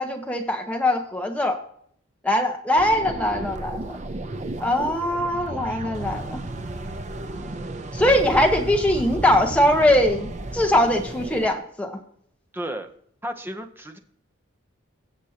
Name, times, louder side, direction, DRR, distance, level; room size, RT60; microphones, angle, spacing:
voice 1, 0.0-1.6 2.2-3.9 4.6-6.4 7.9-10.3 10.5-12.0, left 1 dB, 5° left, 2 dB, 1.1 m, -21 dB
sound 1, 2.8-11.5, right 2 dB, 35° right, 0.5 m, -33 dB
voice 2, 12.5-12.9 13.2-14.0, right 1 dB, 10° right, 6 dB, 0.8 m, -33 dB
16.5 x 7.3 x 2.9 m, 0.64 s
head